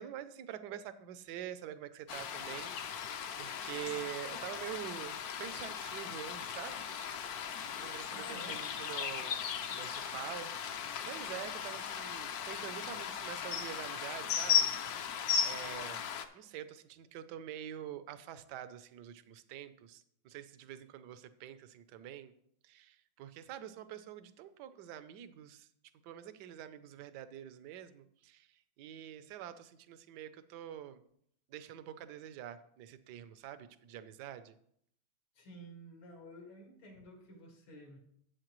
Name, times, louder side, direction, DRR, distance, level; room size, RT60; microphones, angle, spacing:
voice 1, 0.0-7.1 7.4-9.4 9.7-14.7 15.0-16.1 16.3-22.3 22.6-25.7 26.0-31.0 31.5-34.6, right 11 dB, 70° right, 12 dB, 1.1 m, -46 dB
sound 1, 2.1-16.3, left 7 dB, 65° left, 1.0 m, -37 dB
voice 2, 8.1-8.7 35.3-38.0, equal, 85° left, 1 dB, 2.7 m, -52 dB
11.5 x 8.0 x 3.1 m, 0.69 s
omnidirectional pair, 2.2 m